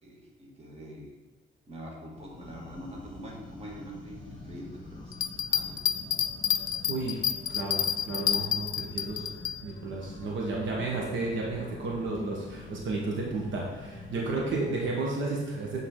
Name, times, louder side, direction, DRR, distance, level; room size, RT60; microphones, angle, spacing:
voice 1, 0.0-1.1 1.7-5.8 10.1-10.3 14.4-14.5, equal, 30° right, -2 dB, 1.7 m, -45 dB
sound 1, 2.1-14.8, left 2 dB, 20° left, 1.8 m, -46 dB
Bell, 5.1-9.5 10.0-10.1, left 8 dB, 45° left, 0.4 m, -28 dB
voice 2, 6.9-7.2 7.5-9.3 9.6-15.8, right 3 dB, 70° right, -2 dB, 1.3 m, -32 dB
8.5 x 3.9 x 3.7 m, 1.3 s
cardioid pair, 90°, 20 cm